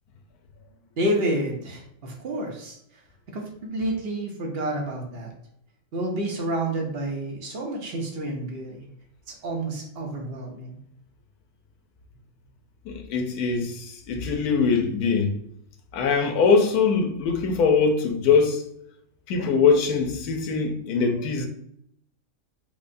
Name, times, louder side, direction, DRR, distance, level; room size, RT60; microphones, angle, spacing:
voice 1, 1.0-2.8 3.3-5.3 5.9-8.9 9.3-10.8, right 1 dB, 50° right, 0.8 m, -29 dB
voice 2, 12.9-15.3 15.9-18.6 19.3-21.5, left 5 dB, 80° left, 1.1 m, -22 dB
4.7 x 2.2 x 2.5 m
omnidirectional pair, 1.6 m